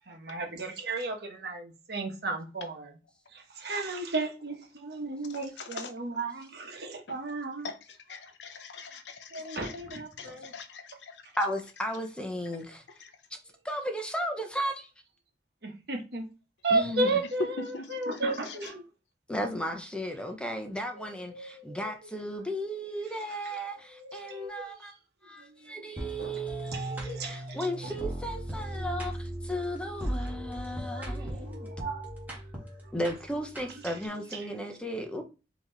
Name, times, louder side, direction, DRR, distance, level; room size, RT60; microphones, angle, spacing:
voice 1, 0.1-2.9 3.3-7.7 9.3-10.5 15.6-16.2 16.6-18.8 21.0-21.8 23.5-23.6 23.9-24.9 25.6-26.3 26.7-27.9 30.9-32.1 33.8-33.9 34.5-34.6, right 3 dB, 65° right, 1.3 m, -34 dB
voice 2, 5.3-6.2 7.1-7.2 7.6-11.2 13.0-13.1 17.7-17.9 18.1-18.7, left 5 dB, 85° left, 0.7 m, -44 dB
voice 3, 11.4-12.8 13.3-13.4 13.6-14.9 16.7-17.2 19.3-24.9 25.2-31.7 32.9-35.2, equal, 5° left, 0.7 m, -35 dB
sound 1, 26.0-34.1, right 1 dB, 10° right, 1.4 m, -37 dB
4.5 x 3.0 x 3.9 m
head